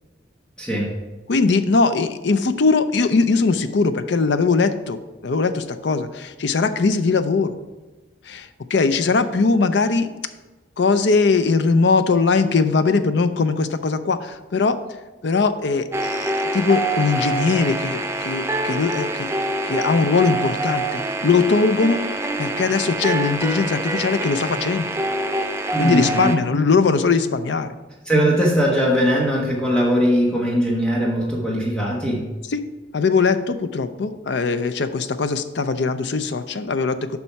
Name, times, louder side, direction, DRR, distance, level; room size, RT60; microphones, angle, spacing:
voice 1, 0.6-0.9 25.7-26.3 28.1-32.2, equal, 5° left, -4 dB, 1.2 m, -20 dB
voice 2, 1.3-7.5 8.3-10.1 10.8-14.8 15.2-19.3 19.6-22.0 22.4-24.9 25.8-27.7 32.5-32.7 32.9-37.2, left 4 dB, 60° left, 10 dB, 0.5 m, -20 dB
sound 1, 15.9-26.4, right 2 dB, 15° right, 0.4 m, -25 dB
7.0 x 5.5 x 4.6 m, 1.2 s
head